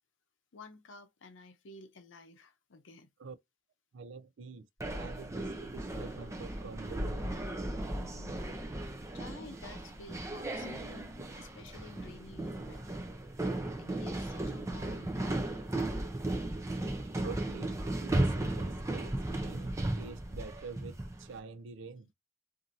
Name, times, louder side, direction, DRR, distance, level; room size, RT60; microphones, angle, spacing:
voice 1, 0.5-3.1 7.9-8.4 9.1-11.1 11.3-13.1 13.8-15.5, left 3 dB, 90° left, 0.6 m, -52 dB
voice 2, 3.9-4.7 4.9-7.4 17.2-22.1, right 4 dB, 80° right, 0.4 m, -46 dB
sound 1, 4.8-21.3, right 1 dB, 15° right, 0.4 m, -36 dB
2.6 x 2.6 x 2.7 m
head